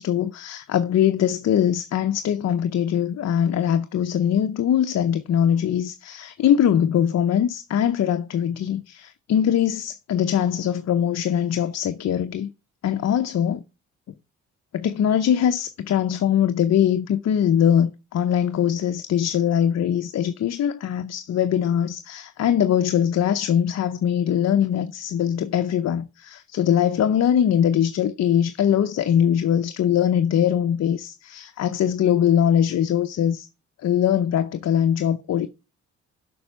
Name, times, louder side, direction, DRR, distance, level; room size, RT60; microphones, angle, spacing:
voice 1, 0.0-12.5 12.8-13.6 14.7-33.5 33.8-35.5, left 9 dB, 60° left, 0.7 m, -22 dB
7.6 x 5.4 x 6.9 m
cardioid pair, 70°, 30 cm